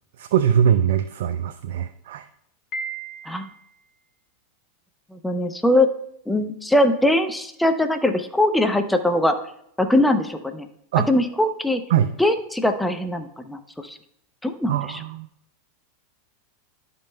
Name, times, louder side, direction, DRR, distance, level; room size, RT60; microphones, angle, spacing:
voice 1, 0.2-2.3 10.9-11.1 11.9-12.1 14.7-15.3, right 9 dB, 75° right, 9 dB, 0.4 m, -21 dB
Piano, 2.7-3.7, right 3 dB, 45° left, 1.9 m, -34 dB
voice 2, 5.1-5.9 6.3-9.4 9.8-10.7 11.0-11.8 12.2-14.0 14.4-15.0, left 1 dB, 5° left, 7 dB, 0.6 m, -21 dB
11.5 x 5.4 x 2.2 m, 0.72 s
hypercardioid pair, 110°, 0 cm